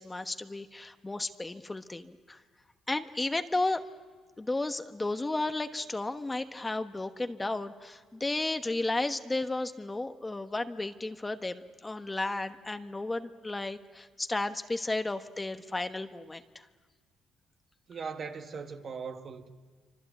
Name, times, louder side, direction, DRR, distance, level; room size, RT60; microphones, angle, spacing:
voice 1, 0.0-2.4 2.9-3.8 4.4-16.6, left 2 dB, 20° left, 1.1 m, -33 dB
voice 2, 17.9-19.5, right 5 dB, 50° right, 1.7 m, -39 dB
26.5 x 25.0 x 8.4 m
cardioid pair, 90°, 0 cm